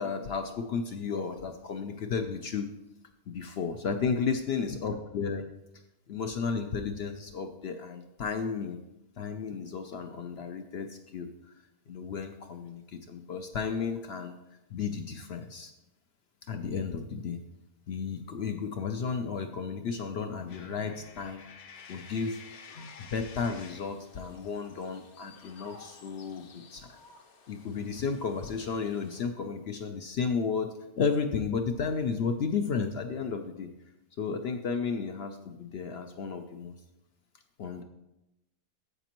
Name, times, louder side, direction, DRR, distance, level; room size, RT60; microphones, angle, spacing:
voice 1, 0.0-2.7 3.3-5.4 6.1-8.8 9.2-11.3 11.9-14.3 14.7-15.7 16.5-17.4 17.9-21.5 21.9-22.4 22.7-27.0 27.5-30.7 31.0-33.7 34.2-36.7 37.6-37.8, left 5 dB, 70° left, 6 dB, 0.6 m, -33 dB
Coin (dropping), 20.5-24.0, left 7 dB, 85° left, 1.3 m, -50 dB
sound 1, 21.7-29.2, left 4 dB, 55° left, 1.0 m, -56 dB
14.5 x 5.1 x 3.0 m, 0.93 s
omnidirectional pair, 1.6 m